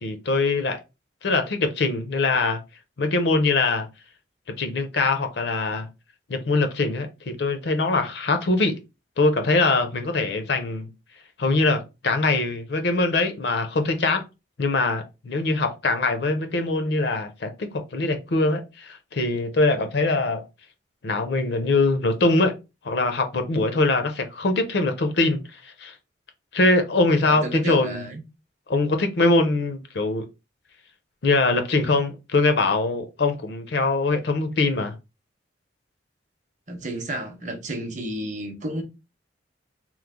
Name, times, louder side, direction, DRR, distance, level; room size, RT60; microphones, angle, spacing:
voice 1, 0.0-0.8 1.2-2.6 3.0-3.9 4.6-5.9 6.3-8.7 9.2-10.9 11.4-14.2 14.6-20.4 21.0-22.5 22.8-25.9 26.5-28.0 28.7-30.2 31.2-34.9, left 3 dB, 60° left, 0.5 m, -22 dB
voice 2, 27.2-28.2 36.7-38.8, right 1 dB, 40° right, 0.7 m, -31 dB
3.0 x 2.0 x 3.5 m
head